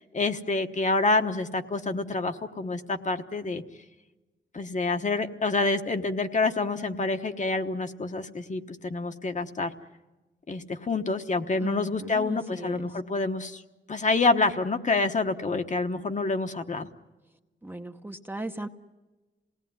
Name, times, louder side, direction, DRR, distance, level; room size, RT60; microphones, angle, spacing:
voice 1, 0.0-3.6 4.5-9.7 10.5-13.6 13.9-16.9, left 3 dB, 40° left, 6 dB, 1.1 m, -27 dB
voice 2, 11.6-12.7 17.6-18.7, right 2 dB, 10° right, 5 dB, 0.9 m, -37 dB
28.0 x 18.5 x 9.4 m, 1.2 s
wide cardioid pair, 175°, 19 cm